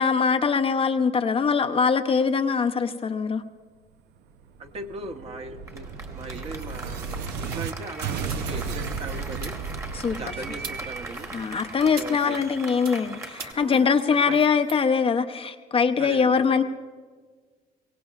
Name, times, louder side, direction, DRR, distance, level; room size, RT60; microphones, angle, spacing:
voice 1, 0.0-3.4 9.9-10.2 11.3-16.6, left 5 dB, 35° left, 7 dB, 0.7 m, -22 dB
sound 1, 4.3-7.7 8.0-12.7, right 5 dB, 85° right, 0.8 m, -35 dB
voice 2, 4.6-7.1 7.4-9.5 10.1-11.3 11.9-12.4 13.5-14.4 16.0-16.5, right 2 dB, 35° right, 4 dB, 1.1 m, -38 dB
Applause, 5.7-13.5, right 2 dB, 20° right, 1.4 m, -40 dB
sound 2, 6.9-14.8, right 6 dB, 60° right, 1.5 m, -46 dB
23.0 x 17.5 x 2.4 m, 1.5 s
cardioid pair, 110°, 17 cm